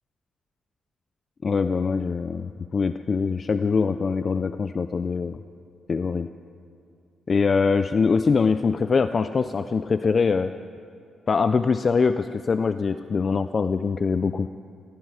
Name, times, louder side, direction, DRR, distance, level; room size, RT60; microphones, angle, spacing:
voice 1, 1.4-5.4 5.9-6.3 7.3-10.5 11.3-14.5, left 5 dB, 40° left, 11 dB, 0.4 m, -23 dB
17.5 x 15.5 x 4.9 m, 2.3 s
cardioid pair, 105°, 0 cm